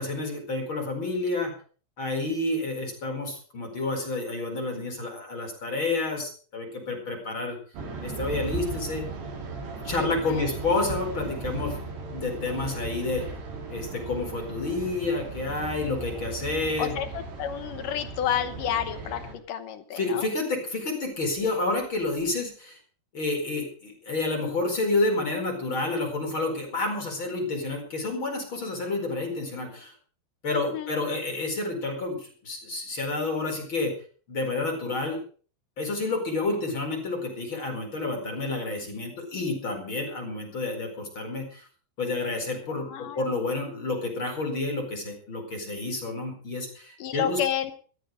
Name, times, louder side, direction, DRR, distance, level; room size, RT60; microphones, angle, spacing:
voice 1, 0.0-1.5 2.0-7.6 8.0-9.1 9.8-11.8 12.1-13.2 13.7-16.9 20.0-22.8 23.1-29.9 30.4-33.9 34.3-35.2 35.8-41.7 42.0-47.4, left 3 dB, 30° left, 2 dB, 5.1 m, -29 dB
sound 1, 7.8-19.3, right 4 dB, 70° right, 5.2 m, -37 dB
voice 2, 10.0-10.5 16.8-20.3 30.5-30.9 42.7-43.4 47.0-47.7, left 10 dB, 70° left, 10 dB, 2.1 m, -31 dB
16.0 x 13.5 x 5.1 m, 0.42 s
omnidirectional pair, 5.0 m